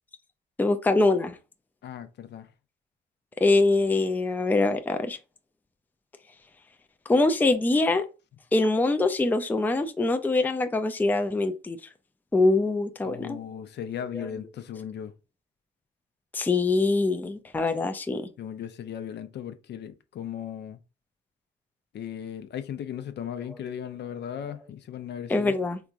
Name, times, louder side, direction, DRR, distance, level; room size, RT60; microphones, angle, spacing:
voice 1, 0.6-1.4 3.4-5.2 7.1-8.1 8.5-11.8 12.3-13.4 16.3-18.3 25.3-25.8, left 2 dB, 10° left, 0.4 m, -23 dB
voice 2, 1.8-2.5 13.0-15.1 18.4-20.8 21.9-25.6, left 9 dB, 60° left, 0.5 m, -37 dB
3.4 x 2.9 x 2.5 m
cardioid pair, 90°, 20 cm